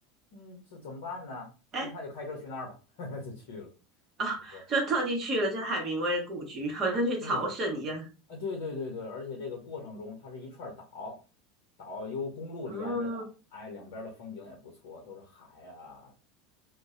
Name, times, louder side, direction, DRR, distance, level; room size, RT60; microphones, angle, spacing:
voice 1, 0.3-1.5 1.8-3.7 4.5-4.6 7.2-7.4 8.3-11.2 11.8-13.2 13.5-16.1, left 3 dB, 65° left, 0 dB, 0.8 m, -40 dB
voice 2, 4.2-8.1 12.7-13.2, right 1 dB, 35° right, 0 dB, 1.1 m, -30 dB
2.5 x 2.2 x 2.5 m, 0.32 s
figure-of-eight pair, 75°, 0 cm